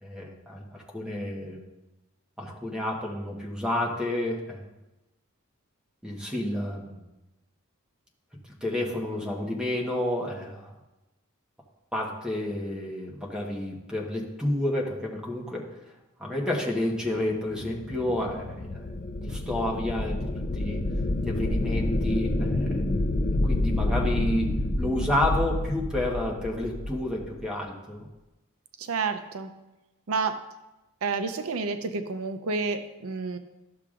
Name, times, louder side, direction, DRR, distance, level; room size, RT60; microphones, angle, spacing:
voice 1, 0.0-1.6 2.4-4.6 6.0-7.0 8.6-10.7 11.9-15.8 16.2-18.9 19.2-20.3 20.5-20.8 21.2-22.8 23.4-28.1, left 1 dB, 5° right, -2 dB, 1.1 m, -30 dB
sound 1, 17.4-27.4, left 1 dB, 40° left, 0.5 m, -28 dB
voice 2, 28.8-29.5 30.1-30.4 31.0-33.4, right 4 dB, 75° right, 9 dB, 0.6 m, -29 dB
12.0 x 6.7 x 2.5 m, 1.0 s
head